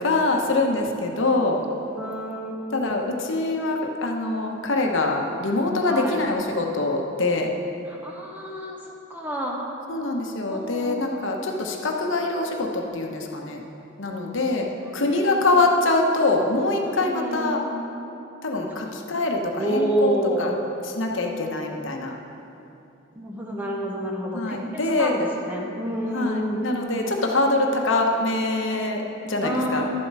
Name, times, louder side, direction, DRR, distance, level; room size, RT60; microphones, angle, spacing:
voice 1, 0.0-1.6 2.7-7.5 9.9-13.6 14.0-14.7 14.9-17.6 18.4-20.5 20.9-22.1 24.3-25.2 26.1-29.8, left 2 dB, 65° left, 2 dB, 1.0 m, -24 dB
voice 2, 2.0-2.6 5.8-6.2 7.8-9.6 10.5-11.6 14.9-15.5 16.9-17.6 18.7-19.1 19.5-20.6 23.2-24.6 24.9-26.7 29.4-29.8, right 1 dB, 10° right, -2 dB, 0.8 m, -29 dB
12.0 x 7.4 x 4.8 m, 2.8 s
head